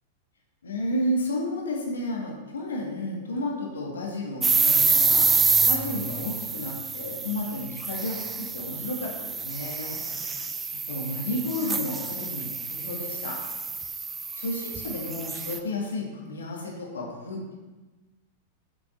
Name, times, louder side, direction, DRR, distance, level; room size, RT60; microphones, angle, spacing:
voice 1, 0.6-5.3 5.7-10.0 10.9-13.4 14.4-17.5, left 1 dB, 80° left, -1 dB, 1.9 m, -32 dB
sound 1, 4.4-15.6, right 5 dB, 15° right, 0.6 m, -27 dB
9.1 x 6.0 x 3.9 m, 1.2 s
hypercardioid pair, 100°, 0 cm